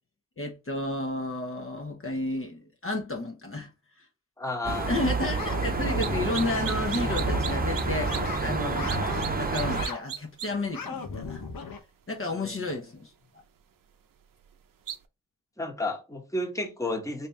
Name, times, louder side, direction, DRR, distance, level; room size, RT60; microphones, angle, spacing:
voice 1, 0.4-3.7 4.0-4.1 4.8-11.8 12.1-13.1, left 2 dB, 40° left, 0.9 m, -32 dB
voice 2, 4.4-5.1 12.3-12.7 15.6-17.3, left 2 dB, 10° left, 1.2 m, -32 dB
sound 1, 4.6-9.9, right 3 dB, 25° right, 0.8 m, -29 dB
sound 2, 5.4-8.4 8.7-9.2 9.5-10.0 10.5-11.8, left 5 dB, 80° left, 0.9 m, -37 dB
sound 3, 6.0-6.1 6.3-7.8 8.1-8.2 8.9-9.3 9.5-10.5 14.9-15.0, right 9 dB, 70° right, 0.6 m, -34 dB
3.3 x 2.8 x 3.2 m
cardioid pair, 50°, 34 cm